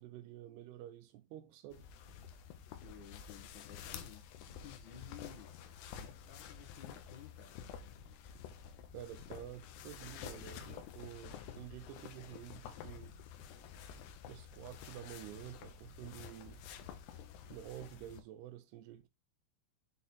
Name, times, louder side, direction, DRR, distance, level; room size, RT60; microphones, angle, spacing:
voice 1, 0.0-1.9 8.9-13.2 14.3-16.6 17.5-19.1, right 12 dB, 80° right, 2.5 m, -50 dB
sound 1, 1.7-18.2, left 8 dB, 80° left, 2.8 m, -50 dB
voice 2, 2.8-5.5 5.9-7.6, left 9 dB, 60° left, 2.2 m, -55 dB
7.3 x 4.0 x 4.0 m
omnidirectional pair, 4.9 m